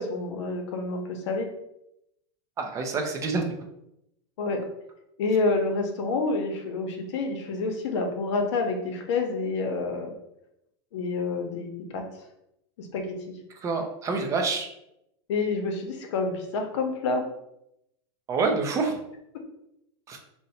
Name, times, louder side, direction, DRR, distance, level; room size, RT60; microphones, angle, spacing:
voice 1, 0.0-1.5 4.4-4.6 5.2-10.1 10.9-12.0 12.8-13.3 15.3-17.2, left 3 dB, 75° left, 4 dB, 0.7 m, -28 dB
voice 2, 2.6-3.4 13.6-14.7 18.3-18.9 20.1-20.2, right 4 dB, 20° right, 3 dB, 0.4 m, -27 dB
2.6 x 2.1 x 4.0 m, 0.82 s
supercardioid pair, 145°, 15 cm